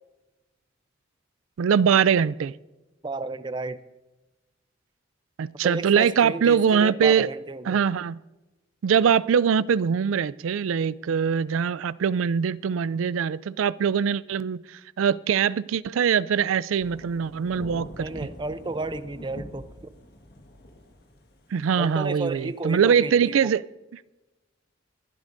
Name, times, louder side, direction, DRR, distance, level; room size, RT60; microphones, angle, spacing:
voice 1, 1.6-2.5 5.4-7.3 7.7-8.2 8.8-14.6 15.0-18.1 21.5-23.6, right 7 dB, 90° right, 0.4 m, -22 dB
voice 2, 3.0-3.8 5.6-7.8 18.0-19.7 21.8-23.5, right 2 dB, 25° right, 0.5 m, -32 dB
Thunder / Rain, 16.8-23.1, equal, 55° left, 1.6 m, -45 dB
23.5 x 11.5 x 2.6 m
head